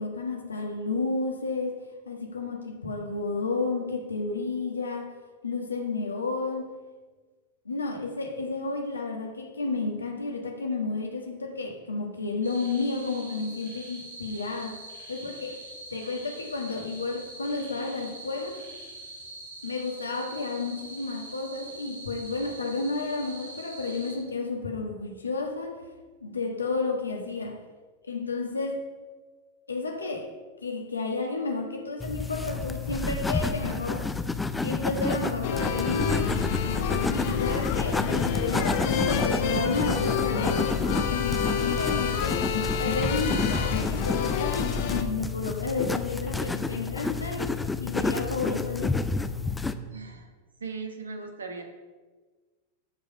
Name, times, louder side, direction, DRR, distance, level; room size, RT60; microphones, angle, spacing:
voice 1, 0.0-1.7 2.0-5.1 5.4-6.7 7.6-14.8 15.1-15.6 15.9-18.6 19.6-25.8 26.2-27.6 28.1-28.9 29.7-30.3 30.6-34.1 34.6-42.4 42.8-49.0, left 3 dB, 75° left, 3 dB, 1.4 m, -31 dB
sound 1, 12.4-24.2, right 1 dB, 85° right, 3.6 m, -44 dB
sound 2, 32.0-49.7, left 4 dB, 10° left, 0.6 m, -30 dB
sound 3, 35.4-45.0, left 6 dB, 50° left, 0.9 m, -28 dB
voice 2, 49.9-50.3 50.6-51.6, right 4 dB, 70° right, 4 dB, 1.4 m, -38 dB
13.0 x 5.1 x 5.3 m, 1.4 s
figure-of-eight pair, 90°, 0 cm